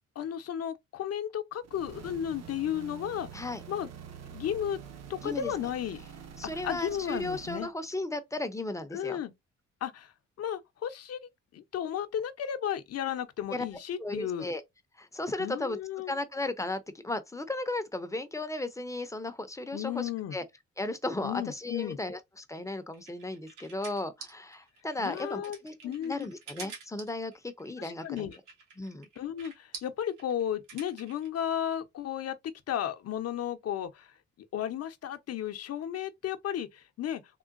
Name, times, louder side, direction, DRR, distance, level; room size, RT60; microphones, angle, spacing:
voice 1, 0.2-3.9 4.3-4.8 5.1-6.1 6.6-7.7 8.9-9.3 9.8-14.5 15.4-16.1 19.7-20.4 21.2-22.0 25.0-25.6 25.8-26.1 27.8-28.4 29.2-32.4 32.7-37.4, left 10 dB, 55° left, 0.7 m, -34 dB
sound 1, 1.6-7.7, right 8 dB, 60° right, 0.7 m, -47 dB
voice 2, 5.2-5.5 6.4-9.2 13.5-13.6 14.0-14.6 15.0-15.8 16.1-20.4 20.8-28.3 28.8-29.1, left 2 dB, 10° left, 0.5 m, -35 dB
sound 2, 22.6-31.3, right 5 dB, 90° right, 1.2 m, -48 dB
3.7 x 2.1 x 2.5 m
cardioid pair, 90°, 30 cm